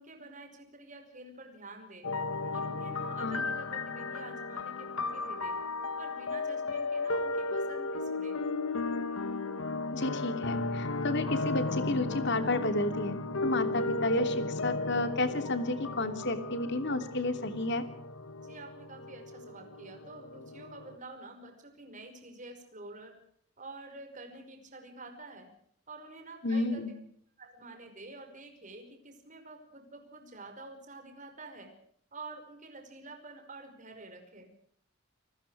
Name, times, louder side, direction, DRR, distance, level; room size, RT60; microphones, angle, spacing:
voice 1, 0.0-2.1 2.5-5.6 6.0-8.4 18.4-23.1 23.6-25.5 25.9-27.0 27.4-31.7 32.1-34.5, right 2 dB, 35° right, 5 dB, 5.4 m, -48 dB
sound 1, 2.0-20.9, left 3 dB, 75° left, 1.7 m, -35 dB
voice 2, 9.9-17.8 26.4-26.9, left 2 dB, 55° left, 8 dB, 3.0 m, -31 dB
29.5 x 20.5 x 4.9 m, 0.67 s
head